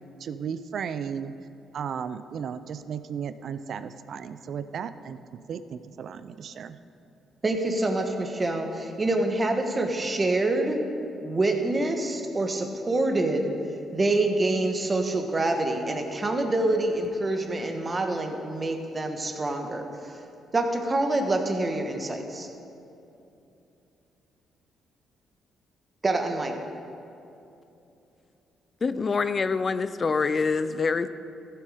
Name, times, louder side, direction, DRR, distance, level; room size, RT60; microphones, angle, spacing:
voice 1, 0.2-1.3 1.7-6.8, right 7 dB, 60° right, 12 dB, 0.5 m, -35 dB
voice 2, 7.4-10.8 11.2-13.5 13.9-19.8 20.5-22.5 26.0-26.5, right 2 dB, 25° right, 4 dB, 1.3 m, -26 dB
voice 3, 28.8-31.1, left 4 dB, 35° left, 13 dB, 0.4 m, -25 dB
15.0 x 7.6 x 5.0 m, 2.8 s
cardioid pair, 90°, 0 cm